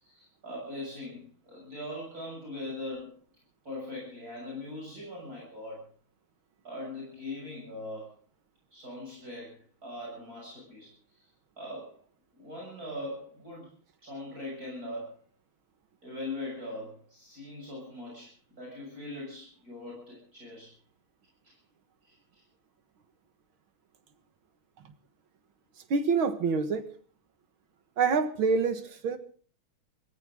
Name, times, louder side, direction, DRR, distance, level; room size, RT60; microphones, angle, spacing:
voice 1, 0.0-3.2 3.6-5.8 6.6-8.1 8.7-11.2 11.6-12.0 12.3-13.7 14.0-15.1 16.0-20.8 21.4-21.6 22.0-22.4, left 1 dB, 45° right, -2 dB, 7.2 m, -41 dB
voice 2, 25.9-26.9 28.0-29.2, right 5 dB, 80° right, 9 dB, 2.3 m, -26 dB
23.5 x 15.5 x 3.7 m, 0.43 s
omnidirectional pair, 2.2 m